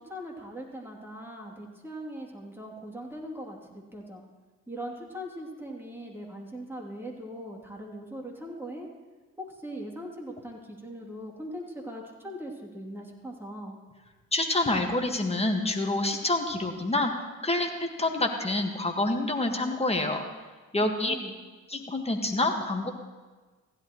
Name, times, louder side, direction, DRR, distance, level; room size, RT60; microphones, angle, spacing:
voice 1, 0.0-4.2 4.7-8.9 9.4-13.8 20.8-21.3, equal, 5° right, -1 dB, 3.0 m, -40 dB
voice 2, 14.3-17.1 17.4-20.2 20.7-21.2 21.7-22.9, left 2 dB, 15° left, 4 dB, 1.7 m, -27 dB
15.5 x 11.5 x 3.2 m, 1.3 s
hypercardioid pair, 50°, 40 cm